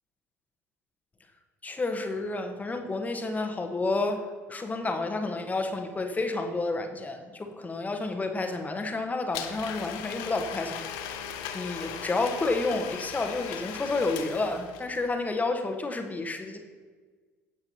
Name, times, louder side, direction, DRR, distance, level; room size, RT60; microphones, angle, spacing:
voice 1, 1.6-10.8 11.1-11.2 11.5-16.6, left 3 dB, 20° left, 5 dB, 1.3 m, -30 dB
Domestic sounds home sounds, 9.3-15.0, left 8 dB, 60° left, 1.0 m, -38 dB
16.0 x 7.7 x 3.0 m, 1.4 s
figure-of-eight pair, 60°, 8 cm